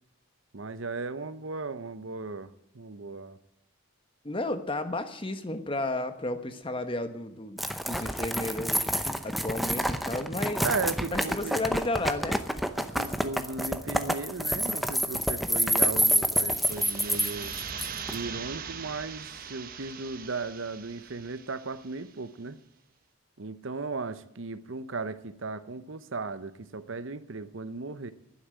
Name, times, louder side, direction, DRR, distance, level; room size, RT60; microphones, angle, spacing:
voice 1, 0.5-3.4 10.6-11.6 12.8-17.6 18.1-22.6 23.4-28.1, right 3 dB, 65° right, 13 dB, 0.8 m, -36 dB
voice 2, 4.2-8.8 9.2-10.6 11.1-12.4, left 2 dB, 25° left, 9 dB, 1.1 m, -33 dB
sound 1, 7.6-18.2, equal, ahead, 0.7 m, -28 dB
sound 2, 16.4-22.0, right 6 dB, 40° right, 1.0 m, -41 dB
11.5 x 9.9 x 9.0 m, 0.79 s
head